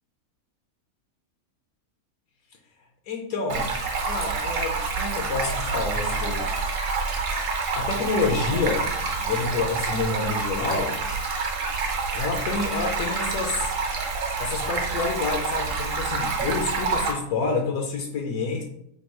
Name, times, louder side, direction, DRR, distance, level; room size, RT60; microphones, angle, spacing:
voice 1, 3.1-3.7 4.0-6.5 7.7-8.9 9.2-11.0 12.1-13.7 14.4-18.6, left 4 dB, 80° left, 1 dB, 1.1 m, -28 dB
Stream, 3.5-17.1, right 4 dB, 65° right, 1.0 m, -28 dB
3.5 x 2.3 x 4.2 m, 0.72 s
omnidirectional pair, 1.5 m